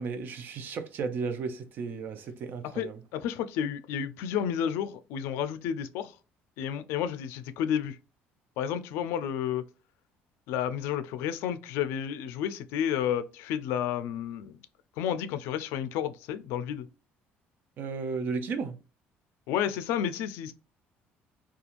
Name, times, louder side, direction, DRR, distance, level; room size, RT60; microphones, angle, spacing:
voice 1, 0.0-3.0 17.8-18.8, right 5 dB, 50° right, 0.5 m, -34 dB
voice 2, 2.7-6.1 6.6-8.0 8.6-9.6 10.5-14.5 15.0-16.9 19.5-20.5, left 9 dB, 90° left, 0.3 m, -31 dB
2.4 x 2.3 x 2.9 m
cardioid pair, 130°, 4 cm